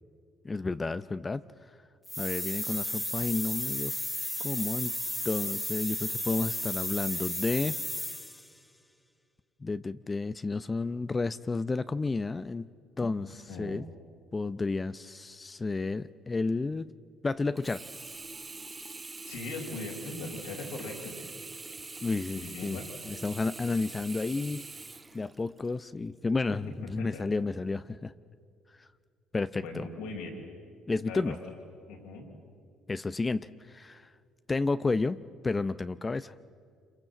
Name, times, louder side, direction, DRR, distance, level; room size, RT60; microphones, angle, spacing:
voice 1, 0.4-1.4 2.2-4.0 4.4-4.9 5.2-7.8 9.6-12.7 13.0-13.8 14.3-16.9 17.2-17.8 22.0-22.8 23.1-24.7 25.1-28.1 28.8-28.9 29.3-29.9 30.9-31.4 32.9-34.1 34.5-36.3, left 3 dB, 25° left, 13 dB, 0.6 m, -31 dB
sound 1, 2.1-8.5, left 1 dB, 5° left, 1.4 m, -34 dB
voice 2, 13.2-13.8 19.3-21.2 22.3-22.9 27.0-27.2 29.5-30.4 31.0-31.3 31.9-32.3, left 2 dB, 80° left, 1 dB, 4.7 m, -40 dB
Sink (filling or washing), 17.6-25.8 26.3-26.4, right 3 dB, 25° right, 0.9 m, -44 dB
27.0 x 24.0 x 7.7 m, 2.3 s
hypercardioid pair, 60°, 0 cm